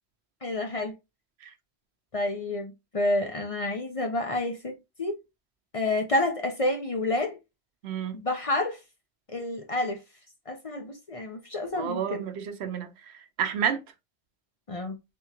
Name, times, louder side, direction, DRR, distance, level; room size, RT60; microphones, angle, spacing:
voice 1, 0.4-1.0 2.1-5.2 5.7-7.4 8.1-8.8 9.3-10.0 10.5-12.2 14.7-15.0, left 2 dB, 40° left, 0.6 m, -29 dB
voice 2, 7.8-8.2 11.7-13.8, right 8 dB, 80° right, 0.9 m, -31 dB
3.5 x 3.4 x 2.8 m
omnidirectional pair, 1.1 m